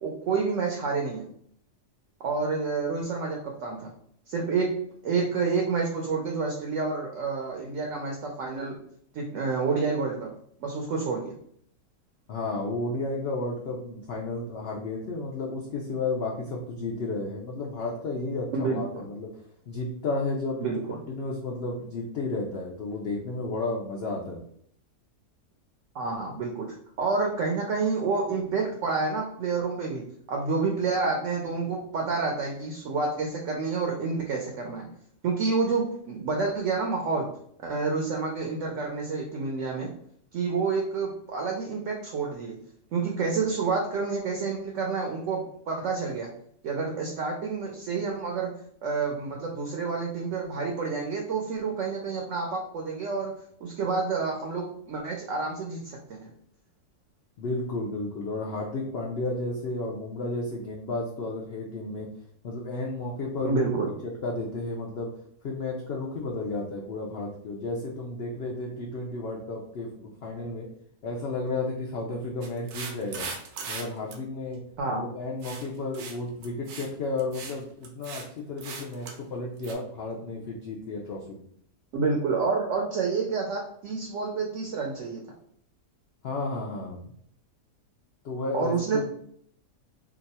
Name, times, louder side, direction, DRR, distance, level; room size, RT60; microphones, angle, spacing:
voice 1, 0.0-1.3 2.2-3.9 4.3-4.7 5.0-8.8 9.1-10.3 10.6-11.3 18.5-19.0 20.6-21.0 25.9-34.9 35.2-37.3 37.6-39.9 40.3-42.6 42.9-46.3 46.6-48.5 48.8-53.3 53.6-56.3 63.4-63.9 74.8-75.0 81.9-85.2 88.5-89.0, right 4 dB, 65° right, 1 dB, 0.9 m, -29 dB
voice 2, 12.3-19.3 19.7-24.4 57.4-62.1 62.4-63.7 64.0-65.1 65.4-70.7 71.0-73.3 73.7-74.6 74.9-81.4 86.2-87.1 88.2-89.0, left 2 dB, 60° left, -2 dB, 0.6 m, -32 dB
sound 1, 72.4-73.8 74.1-74.2 75.4-75.7 75.9-76.2 76.4-76.9 77.2-77.6 77.8-78.2 78.6-79.2 79.6-79.7, right 5 dB, 85° right, 1.2 m, -38 dB
2.9 x 2.3 x 4.1 m, 0.64 s
omnidirectional pair, 1.6 m